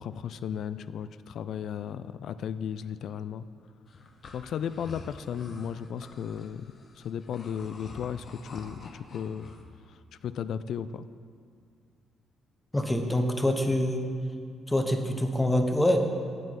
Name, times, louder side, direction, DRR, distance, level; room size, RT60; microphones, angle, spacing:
voice 1, 0.0-3.4 4.3-9.5 9.9-11.1, left 8 dB, 70° left, 14 dB, 0.3 m, -35 dB
sound 1, 3.9-9.6, left 3 dB, 50° left, 0.9 m, -47 dB
voice 2, 12.7-14.0 14.7-16.0, left 1 dB, 10° left, 5 dB, 0.9 m, -25 dB
7.8 x 7.7 x 5.7 m, 2.2 s
cardioid pair, 90°, 0 cm